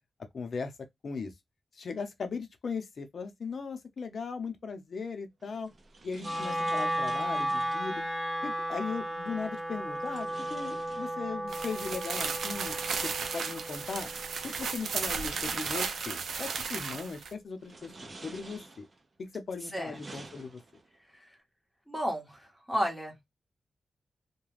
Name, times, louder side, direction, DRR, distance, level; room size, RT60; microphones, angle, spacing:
voice 1, 0.3-0.7 1.0-1.3 1.8-5.7 6.0-8.0 8.4-12.7 13.0-14.1 14.4-18.8 19.2-20.6, left 5 dB, 60° left, 0.6 m, -38 dB
sound 1, 5.4-7.9 9.9-11.6 13.0-13.1 14.0-16.1 16.8-17.1 17.6-19.1 19.6-21.0, right 3 dB, 40° right, 0.6 m, -51 dB
Wind instrument woodwind instrument, 6.2-16.4, equal, 20° left, 0.9 m, -35 dB
sound 2, 11.5-17.3, right 5 dB, 85° right, 0.4 m, -34 dB
voice 2, 21.9-23.2, equal, ahead, 1.1 m, -33 dB
2.3 x 2.2 x 3.1 m
wide cardioid pair, 110°, 0 cm